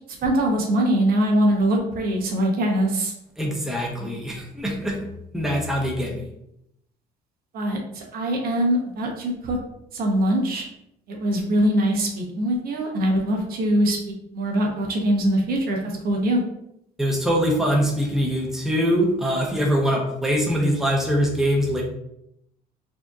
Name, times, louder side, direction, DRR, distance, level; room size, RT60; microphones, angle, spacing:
voice 1, 0.2-3.1 7.5-9.6 9.9-10.7 11.1-16.4, right 1 dB, 60° right, 1 dB, 1.0 m, -22 dB
voice 2, 3.4-5.0 5.3-6.3 17.0-21.8, equal, ahead, -1 dB, 0.8 m, -23 dB
4.8 x 2.9 x 2.4 m, 0.78 s
cardioid pair, 110°, 17 cm